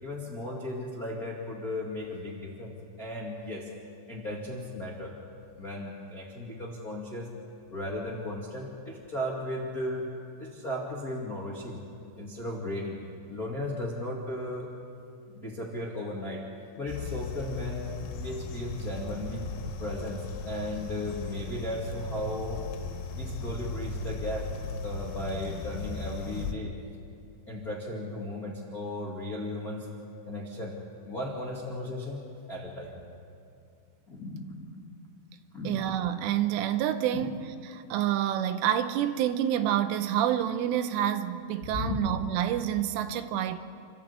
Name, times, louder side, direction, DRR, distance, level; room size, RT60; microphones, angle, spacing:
voice 1, 0.0-2.7 3.0-3.7 4.1-5.1 5.5-7.3 7.7-10.1 10.4-11.8 12.2-13.0 13.3-14.7 15.3-16.5 16.8-19.5 19.8-22.7 23.1-24.5 24.8-26.8 27.5-29.9 30.2-30.7 31.0-32.2 32.5-33.0 34.1-34.8 35.5-35.8 37.1-37.2 41.7-42.0, left 1 dB, 45° left, 1.2 m, -35 dB
sound 1, 16.9-26.5, left 3 dB, 90° left, 4.2 m, -37 dB
voice 2, 35.6-43.6, right 11 dB, 85° right, 3.3 m, -28 dB
27.5 x 14.5 x 8.2 m
omnidirectional pair, 5.6 m